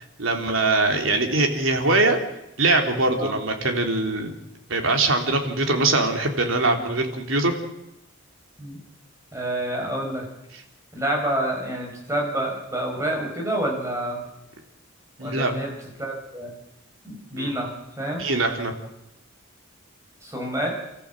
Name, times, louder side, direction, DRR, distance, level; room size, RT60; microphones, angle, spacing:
voice 1, 0.2-2.2 2.6-4.4 4.7-7.5 15.2-15.6 17.3-17.5 18.2-18.7, right 2 dB, 75° right, 4 dB, 3.4 m, -22 dB
voice 2, 9.3-10.3 10.9-14.2 15.2-15.7 16.0-16.5 17.0-17.7 18.0-18.2 20.2-20.7, right 1 dB, 15° right, 0 dB, 6.2 m, -28 dB
29.0 x 14.5 x 7.7 m, 0.89 s
head